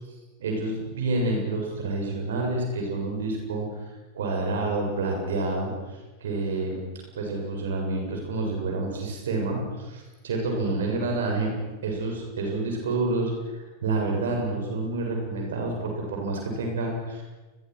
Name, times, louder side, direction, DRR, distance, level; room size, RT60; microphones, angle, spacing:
voice 1, 0.4-3.7 4.1-5.7 6.2-6.8 7.1-11.5 11.8-13.3 13.8-17.2, right 2 dB, 60° right, 1 dB, 7.4 m, -28 dB
30.0 x 22.0 x 6.4 m, 1.2 s
figure-of-eight pair, 90°, 0 cm